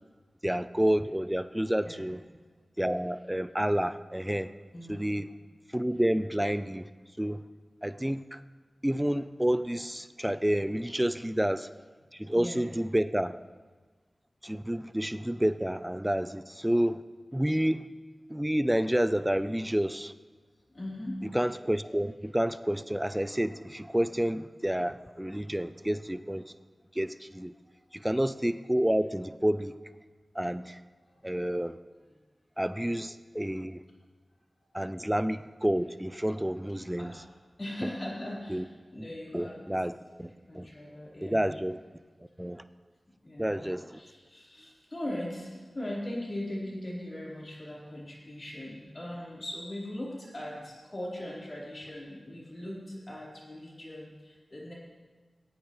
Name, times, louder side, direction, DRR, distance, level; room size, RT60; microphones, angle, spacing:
voice 1, 0.4-2.2 2.8-4.5 4.9-5.3 5.7-6.9 7.2-7.4 7.8-8.4 8.8-11.7 12.1-13.3 14.4-17.0 17.3-17.8 18.3-20.1 21.3-26.4 27.0-27.5 27.9-29.7 30.4-30.8 31.2-31.8 32.6-33.8 34.7-37.1 38.5-38.6 39.3-40.7 41.2-41.8 42.4-42.6 43.4-44.0, equal, 10° right, 13 dB, 0.5 m, -29 dB
voice 2, 1.6-2.1 4.7-5.1 12.3-12.6 20.7-21.2 27.6-27.7 30.9-31.4 32.0-32.2 34.6-34.7 37.0-37.2 37.6-38.6 38.9-39.6 40.1-41.5 42.2-42.3 43.2-43.6 43.9-54.7, left 1 dB, 45° left, -6 dB, 4.2 m, -40 dB
19.0 x 8.8 x 3.2 m, 1.4 s
cardioid pair, 40°, 0 cm